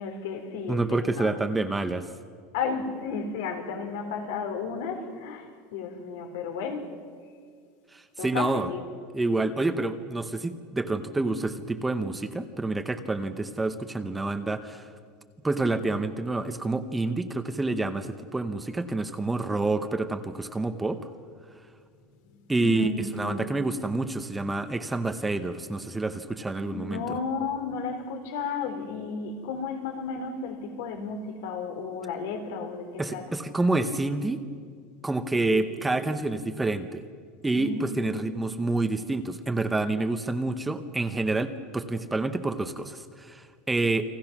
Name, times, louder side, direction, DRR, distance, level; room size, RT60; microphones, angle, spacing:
voice 1, 0.0-1.3 2.5-6.9 8.2-8.8 22.6-23.5 26.7-33.2 35.5-35.7 37.5-38.4, left 5 dB, 80° left, 5 dB, 3.7 m, -33 dB
voice 2, 0.7-2.1 7.9-8.7 9.1-14.9 15.4-21.0 22.5-27.2 33.0-34.4 35.0-37.0 37.4-44.0, right 2 dB, 5° right, 8 dB, 0.8 m, -28 dB
30.0 x 22.5 x 6.0 m, 2.1 s
supercardioid pair, 175°, 0 cm